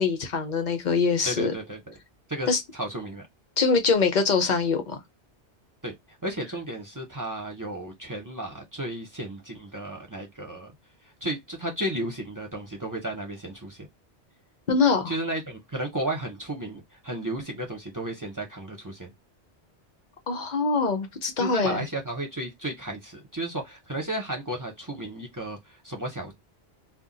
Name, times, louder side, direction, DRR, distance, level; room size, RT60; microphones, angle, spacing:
voice 1, 0.0-1.5 2.5-2.6 3.6-5.0 14.7-15.1 20.3-21.8, left 4 dB, 50° left, 0.6 m, -23 dB
voice 2, 1.2-2.0 2.3-3.3 5.8-5.9 6.2-10.7 11.2-13.9 15.1-19.1 21.4-26.3, right 1 dB, 25° right, 0.5 m, -33 dB
2.3 x 2.2 x 3.8 m
omnidirectional pair, 1.2 m